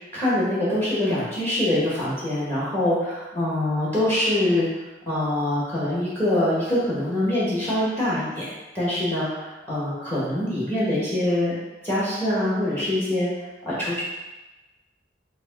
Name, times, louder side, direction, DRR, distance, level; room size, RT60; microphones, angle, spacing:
voice 1, 0.1-4.7 5.1-11.6 11.8-13.3 13.6-14.0, left 1 dB, 10° left, -8 dB, 1.4 m, -24 dB
4.6 x 2.3 x 4.0 m, 1.1 s
head